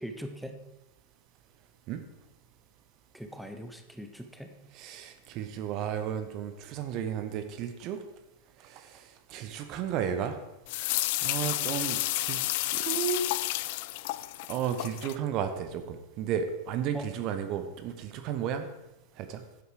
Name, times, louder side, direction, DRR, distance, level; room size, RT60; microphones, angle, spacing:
voice 1, 0.0-0.6 3.1-4.5 16.9-17.1, equal, ahead, 5 dB, 0.9 m, -41 dB
voice 2, 4.7-8.0 8.6-10.4 11.2-13.3 14.5-18.7 19.2-19.4, right 8 dB, 40° right, 8 dB, 1.0 m, -33 dB
sound 1, 10.7-15.2, left 18 dB, 50° left, 0.3 m, -31 dB
10.0 x 8.1 x 4.8 m, 0.96 s
figure-of-eight pair, 90°, 0 cm